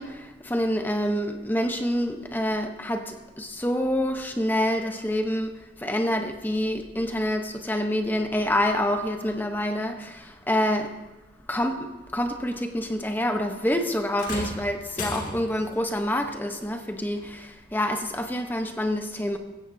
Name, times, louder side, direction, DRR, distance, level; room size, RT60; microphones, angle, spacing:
voice 1, 0.0-5.5 5.8-10.9 11.5-19.4, left 1 dB, 10° left, 5 dB, 0.9 m, -27 dB
sound 1, 14.2-15.7 17.2-17.3 18.2-18.3, left 2 dB, 40° left, 2.1 m, -35 dB
16.5 x 15.0 x 2.8 m, 1.1 s
head